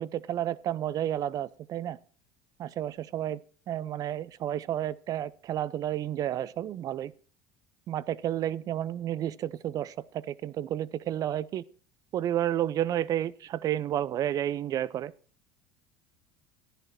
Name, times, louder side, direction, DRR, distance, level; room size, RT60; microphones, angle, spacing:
voice 1, 0.0-2.0 2.6-3.4 3.7-7.1 7.9-11.6 12.1-15.1, right 11 dB, 45° right, 20 dB, 0.5 m, -31 dB
11.0 x 10.0 x 4.3 m, 0.41 s
supercardioid pair, 90°, 8 cm